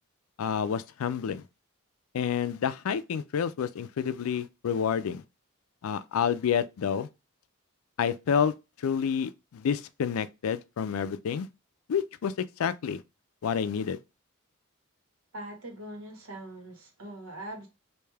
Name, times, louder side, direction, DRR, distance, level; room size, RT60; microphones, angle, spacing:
voice 1, 0.4-1.4 2.1-5.2 5.8-7.1 8.0-8.5 8.8-11.5 11.9-12.3 12.6-13.0 13.4-14.0, left 7 dB, 80° left, 0.4 m, -29 dB
voice 2, 15.3-17.7, right 1 dB, 85° right, 1.4 m, -42 dB
3.3 x 2.7 x 3.3 m
head